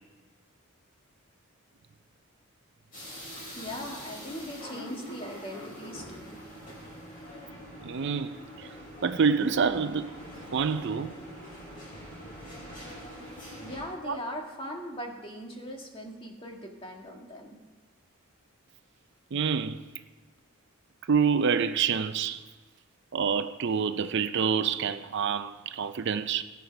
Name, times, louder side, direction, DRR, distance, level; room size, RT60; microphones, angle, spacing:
sound 1, 2.9-13.8, equal, 40° left, 4.2 m, -44 dB
voice 1, 3.6-6.6 13.6-17.6, equal, 25° left, 1.7 m, -40 dB
voice 2, 7.8-8.3 9.0-10.1 10.5-11.1 14.1-14.2 19.3-19.8 21.1-22.4 23.1-26.4, right 6 dB, 55° right, 0.5 m, -27 dB
16.5 x 8.3 x 5.8 m
head